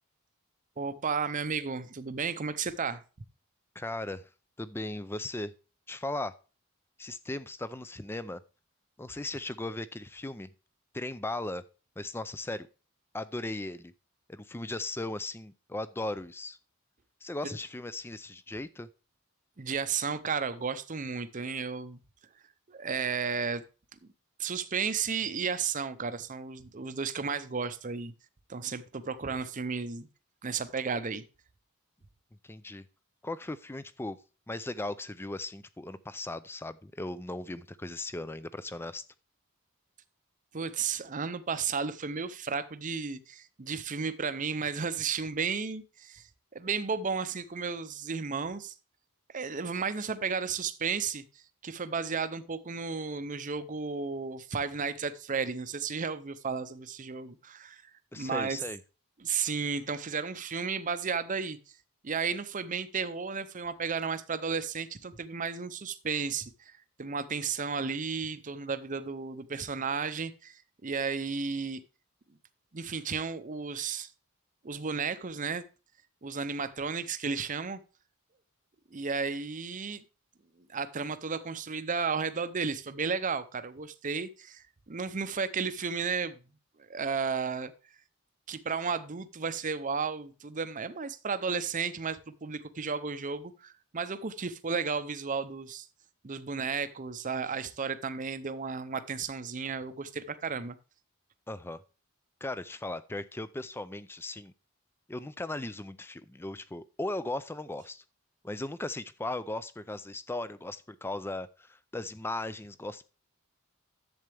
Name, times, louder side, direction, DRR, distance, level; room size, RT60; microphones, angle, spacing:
voice 1, 0.8-3.0 17.4-17.5 19.6-22.0 22.7-23.6 24.4-28.1 28.5-30.1 30.4-31.2 40.5-48.7 49.3-51.2 51.6-58.6 59.2-61.6 62.0-71.8 72.7-74.1 74.6-75.6 76.2-77.8 78.9-80.0 80.7-86.4 86.9-87.7 88.5-95.9 96.2-100.8, right 5 dB, 35° right, 0.6 m, -33 dB
voice 2, 3.8-4.3 4.6-5.5 5.9-6.4 7.0-8.4 9.0-10.5 10.9-11.6 12.0-12.7 13.1-13.9 14.3-16.6 17.2-18.9 32.4-32.9 33.2-34.2 34.5-39.0 58.1-58.8 101.5-101.8 102.4-104.5 105.1-108.0 108.4-113.0, left 2 dB, 10° left, 0.4 m, -37 dB
11.0 x 7.9 x 3.4 m
head